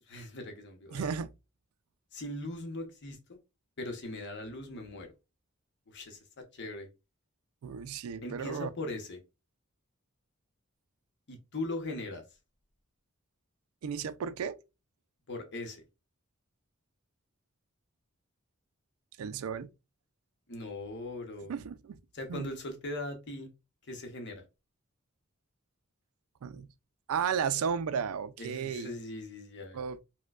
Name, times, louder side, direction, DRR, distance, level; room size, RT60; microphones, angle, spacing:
voice 1, 0.1-1.1 2.1-3.4 3.8-5.1 5.9-6.9 8.2-9.2 11.3-12.2 15.3-15.8 20.5-21.5 22.1-23.5 23.9-24.4 28.4-29.8, left 2 dB, 55° left, 0.9 m, -40 dB
voice 2, 0.9-1.3 7.6-8.7 13.8-14.6 19.2-19.7 21.5-22.0 22.3-22.5 26.4-26.7 27.1-28.9 29.7-30.0, right 7 dB, 90° right, 0.4 m, -34 dB
4.3 x 2.2 x 2.3 m
head